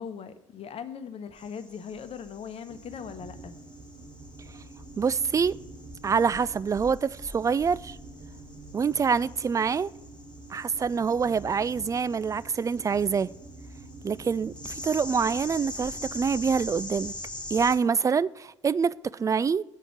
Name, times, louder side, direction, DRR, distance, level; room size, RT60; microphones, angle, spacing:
voice 1, 0.0-3.5, left 7 dB, 40° left, 1.0 m, -39 dB
sound 1, 1.4-17.8, left 2 dB, 5° left, 2.3 m, -44 dB
sound 2, 2.7-16.7, right 2 dB, 40° right, 1.6 m, -47 dB
voice 2, 5.0-5.6 6.0-8.0 8.7-9.9 10.5-13.3 14.0-17.1 17.5-19.6, right 6 dB, 20° right, 0.3 m, -26 dB
8.5 x 5.1 x 7.1 m
hypercardioid pair, 60°, 16 cm